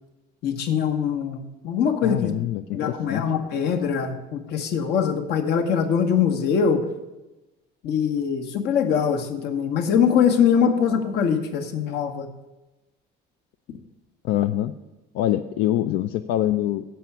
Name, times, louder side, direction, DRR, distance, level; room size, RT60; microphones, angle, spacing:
voice 1, 0.4-2.3 2.7-6.8 7.8-12.3, left 7 dB, 60° left, 6 dB, 1.1 m, -22 dB
voice 2, 2.0-3.2 14.2-14.7 15.1-16.9, left 13 dB, 85° left, 8 dB, 0.4 m, -24 dB
7.6 x 5.7 x 7.1 m, 1.0 s
cardioid pair, 160°, 19 cm